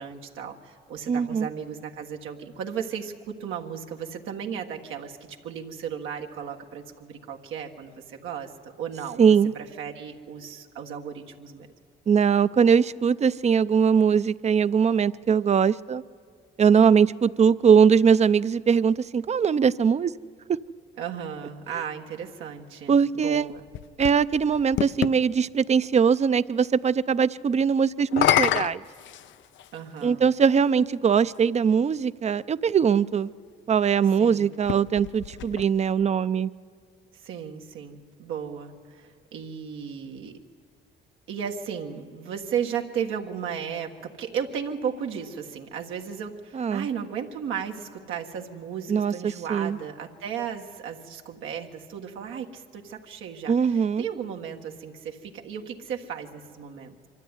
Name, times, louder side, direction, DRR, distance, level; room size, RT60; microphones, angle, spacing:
voice 1, 0.0-8.5 8.8-9.2 9.5-11.7 21.0-23.6 29.7-30.2 34.2-34.5 37.2-40.3 41.3-56.9, right 7 dB, 90° right, 3 dB, 1.5 m, -35 dB
voice 2, 1.1-1.5 9.2-9.5 12.1-16.0 16.6-20.1 20.5-20.6 22.9-23.5 24.0-28.8 30.0-33.3 33.7-36.5 46.5-46.9 48.9-49.8 53.5-54.0, right 6 dB, 35° right, 16 dB, 0.5 m, -21 dB
sound 1, 23.3-25.2 28.0-29.8 30.7-30.8 34.5-36.1, left 12 dB, 70° left, 0.5 m, -28 dB
24.0 x 13.0 x 9.7 m, 2.3 s
cardioid pair, 90°, 20 cm